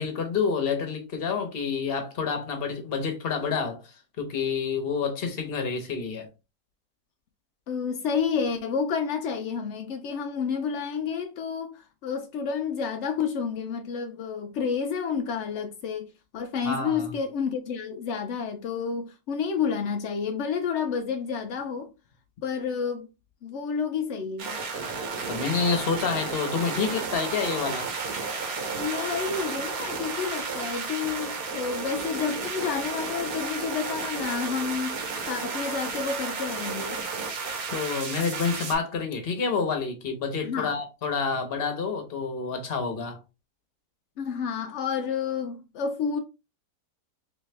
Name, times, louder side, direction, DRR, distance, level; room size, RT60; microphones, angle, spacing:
voice 1, 0.0-3.8 4.2-6.3 16.6-17.1 25.3-27.9 37.7-43.2, left 5 dB, 45° left, 0.9 m, -28 dB
voice 2, 7.7-21.9 22.4-23.1 23.4-24.6 28.7-35.0 35.3-37.0 40.4-40.7 44.2-46.2, left 6 dB, 80° left, 0.6 m, -30 dB
sound 1, 24.4-38.7, right 4 dB, 65° right, 1.3 m, -32 dB
3.4 x 3.0 x 3.2 m
omnidirectional pair, 1.8 m